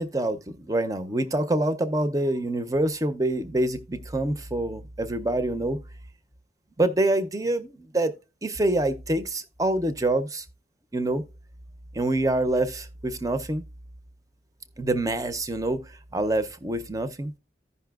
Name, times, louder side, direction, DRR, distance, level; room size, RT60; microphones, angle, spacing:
voice 1, 0.0-5.8 6.8-8.1 8.4-10.4 10.9-11.2 11.9-13.6 14.8-17.3, right 1 dB, 20° right, 0.5 m, -26 dB
15.0 x 5.4 x 2.3 m
head